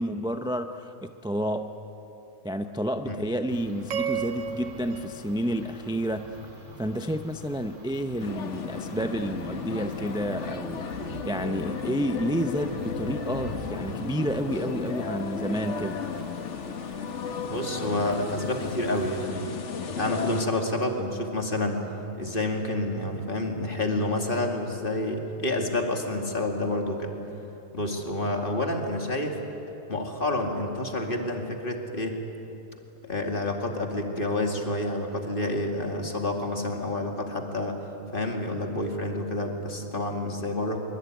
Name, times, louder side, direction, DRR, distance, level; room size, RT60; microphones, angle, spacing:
voice 1, 0.0-1.7 2.4-6.3 6.8-16.0, equal, 5° right, 7 dB, 0.4 m, -30 dB
sound 1, 3.5-19.3, equal, 75° right, 3.9 m, -44 dB
sound 2, 3.9-6.3, right 8 dB, 60° right, 1.4 m, -34 dB
sound 3, 8.2-20.5, left 6 dB, 50° left, 1.5 m, -35 dB
voice 2, 17.5-19.6 19.9-21.8 22.2-27.1 27.7-29.4 29.9-32.2 33.0-37.8 38.1-40.8, left 1 dB, 35° left, 3 dB, 2.6 m, -29 dB
24.0 x 23.5 x 9.4 m, 3.0 s
omnidirectional pair, 1.6 m